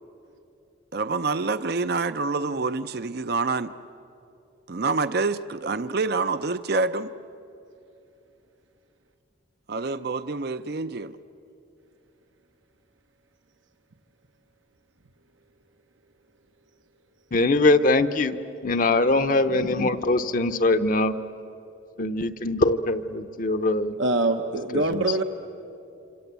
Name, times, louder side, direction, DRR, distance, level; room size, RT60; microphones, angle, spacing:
voice 1, 0.9-3.7 4.7-7.1 9.7-11.2, right 3 dB, 50° right, 12 dB, 0.6 m, -27 dB
voice 2, 17.3-18.4 18.6-21.1 22.0-24.0 24.7-25.0, left 2 dB, 40° left, 8 dB, 0.7 m, -22 dB
voice 3, 24.0-25.2, right 2 dB, 75° right, 6 dB, 1.0 m, -24 dB
27.0 x 26.5 x 8.2 m, 2.8 s
head